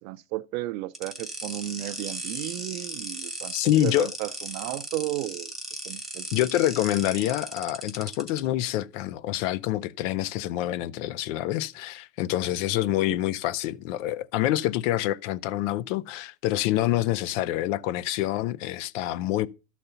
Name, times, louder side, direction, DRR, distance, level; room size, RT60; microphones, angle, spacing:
voice 1, 0.0-3.6 3.8-5.5 5.9-6.3 13.1-13.2 17.3-17.4, right 17 dB, 70° right, 0.6 m, -34 dB
sound 1, 0.9-8.4, right 1 dB, ahead, 0.9 m, -37 dB
voice 2, 3.5-4.1 6.3-19.5, left 14 dB, 60° left, 0.6 m, -26 dB
12.0 x 4.2 x 6.8 m
supercardioid pair, 160°, 42 cm